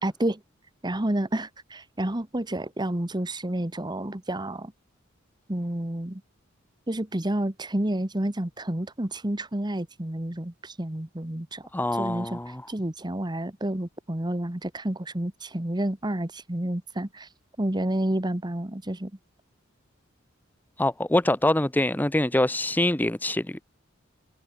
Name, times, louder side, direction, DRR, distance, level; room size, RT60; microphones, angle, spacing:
voice 1, 0.0-0.4 0.8-4.7 5.5-6.2 6.9-11.6 12.0-12.4 12.7-17.3 17.6-19.1, right 1 dB, 20° right, 1.4 m, -30 dB
voice 2, 11.7-12.6 20.8-23.6, left 1 dB, 10° left, 0.7 m, -24 dB
head